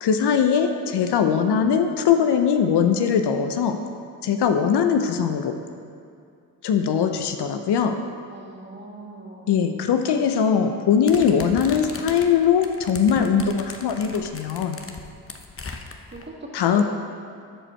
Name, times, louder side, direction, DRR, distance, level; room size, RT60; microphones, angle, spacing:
voice 1, 0.0-3.8 4.2-5.6 6.6-8.0 9.5-14.8 16.5-16.8, left 7 dB, 65° left, 6 dB, 0.7 m, -21 dB
voice 2, 8.3-9.5 16.1-16.8, right 2 dB, 25° right, -3 dB, 2.4 m, -40 dB
sound 1, 11.1-16.2, left 4 dB, 30° left, 0.9 m, -38 dB
13.0 x 5.1 x 4.4 m, 2.4 s
supercardioid pair, 45°, 43 cm